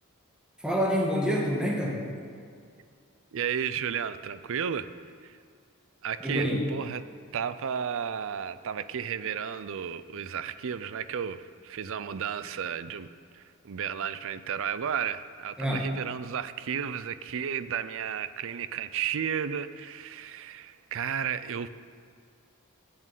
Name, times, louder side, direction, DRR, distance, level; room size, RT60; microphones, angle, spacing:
voice 1, 0.6-2.0 6.2-6.6 15.6-15.9, equal, 5° right, -3 dB, 1.5 m, -27 dB
voice 2, 3.3-4.9 5.2-5.4 6.0-7.0 7.3-13.1 13.3-21.7, right 8 dB, 65° right, 13 dB, 0.5 m, -33 dB
8.8 x 7.1 x 8.3 m, 2.3 s
head